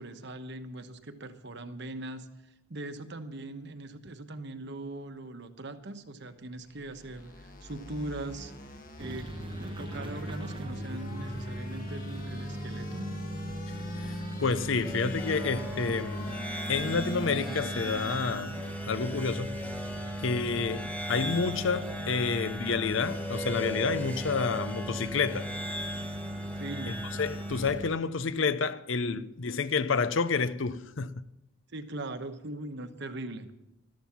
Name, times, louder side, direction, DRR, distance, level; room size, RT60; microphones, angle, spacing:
voice 1, 0.0-2.3 2.7-8.5 9.0-13.1 26.6-27.0 29.1-29.3 31.7-33.5, right 2 dB, 55° right, 1.1 m, -40 dB
sound 1, 6.5-18.7, equal, 40° left, 1.4 m, -43 dB
sound 2, 9.0-27.9, right 1 dB, 25° right, 0.8 m, -38 dB
voice 2, 13.9-16.4 16.7-18.6 18.9-19.6 20.2-25.5 26.9-31.2, left 5 dB, 65° left, 0.6 m, -29 dB
sound 3, 14.8-27.7, left 1 dB, 5° left, 1.0 m, -39 dB
14.0 x 13.0 x 5.9 m
head